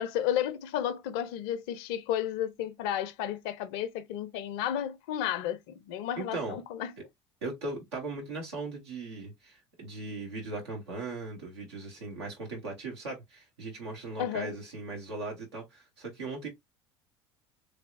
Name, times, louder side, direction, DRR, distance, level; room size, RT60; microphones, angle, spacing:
voice 1, 0.0-6.9 14.2-14.5, left 10 dB, 55° left, 0.6 m, -32 dB
voice 2, 6.2-6.6 7.4-16.5, right 3 dB, 70° right, 1.3 m, -38 dB
3.3 x 3.3 x 2.5 m
figure-of-eight pair, 65°, 14 cm